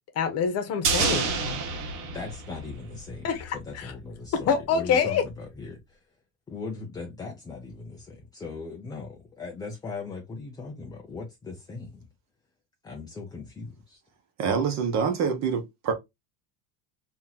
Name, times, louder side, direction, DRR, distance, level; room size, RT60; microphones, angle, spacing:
voice 1, 0.1-1.6 3.2-3.9 4.5-5.2, left 6 dB, 40° left, 0.9 m, -26 dB
sound 1, 0.8-3.2 3.5-3.6, right 5 dB, 70° right, 1.4 m, -28 dB
voice 2, 2.1-3.3 3.5-6.0 6.5-12.1 12.8-14.0, left 4 dB, 10° left, 0.4 m, -39 dB
voice 3, 14.4-15.9, right 6 dB, 45° right, 1.0 m, -26 dB
2.9 x 2.8 x 3.8 m
cardioid pair, 150°, 39 cm